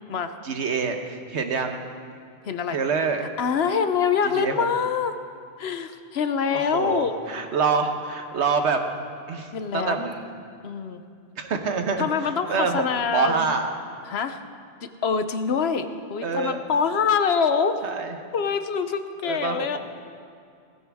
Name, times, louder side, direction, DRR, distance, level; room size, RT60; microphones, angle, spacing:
voice 1, 0.4-1.8 2.7-3.2 4.3-4.7 6.5-8.8 9.3-10.3 11.4-12.1 12.5-12.8 13.1-13.7 16.2-16.7 17.8-18.1 19.2-19.8, right 5 dB, 85° right, 5 dB, 1.3 m, -26 dB
voice 2, 2.4-2.8 3.4-5.1 5.6-7.1 9.5-10.1 10.6-11.0 12.0-13.5 14.1-14.4 15.0-17.7 18.3-19.8, left 6 dB, 70° left, 9 dB, 1.0 m, -25 dB
17.5 x 15.0 x 3.5 m, 2.4 s
omnidirectional pair, 1.1 m